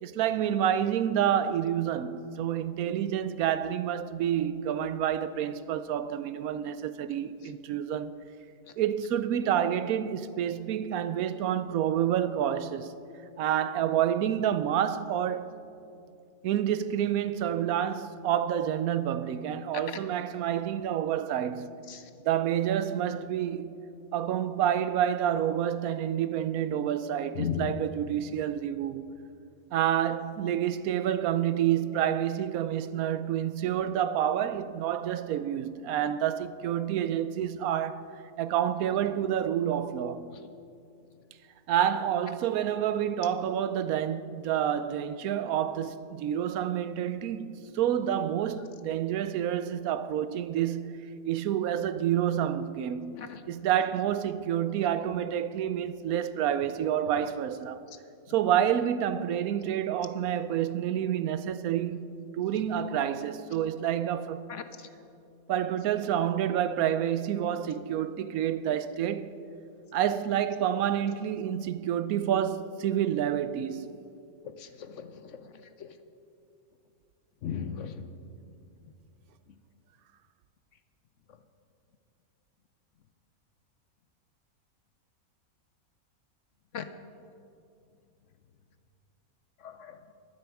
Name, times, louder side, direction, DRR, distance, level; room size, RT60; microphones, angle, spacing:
voice 1, 0.0-8.1 8.8-12.9 13.4-15.6 16.4-21.8 22.2-23.7 24.1-29.0 29.7-38.0 38.4-40.3 41.7-51.0 51.3-57.8 58.3-64.5 65.5-69.3 69.9-73.9, right 10 dB, 75° right, 1.0 m, -28 dB
voice 2, 27.3-27.7 53.2-53.4 74.6-75.1 75.8-75.9 77.4-77.9 86.7-86.8 89.6-90.0, left 8 dB, 65° left, 0.9 m, -35 dB
22.5 x 7.8 x 4.7 m
omnidirectional pair, 1.6 m